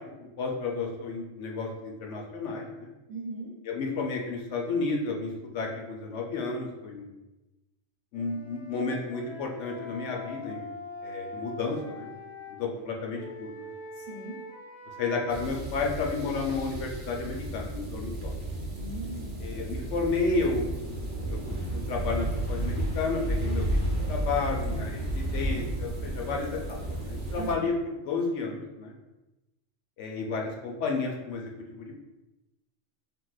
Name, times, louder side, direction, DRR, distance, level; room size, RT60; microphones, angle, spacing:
voice 1, 0.2-2.9 3.6-7.1 8.1-10.7 11.0-12.1 12.5-13.7 15.0-18.3 19.4-20.7 21.3-21.4 21.7-23.7 24.1-28.9 30.0-31.9, left 4 dB, 70° left, 0 dB, 0.9 m, -32 dB
voice 2, 3.1-3.5 14.0-14.4 18.8-19.4 27.4-27.6, right 2 dB, 85° right, -2 dB, 1.2 m, -39 dB
Wind instrument woodwind instrument, 8.1-12.6 13.1-15.4, left 2 dB, 20° left, 0.8 m, -43 dB
sound 1, 15.3-27.5, right 1 dB, 50° right, 0.8 m, -32 dB
3.8 x 2.6 x 2.3 m, 1.0 s
omnidirectional pair, 1.3 m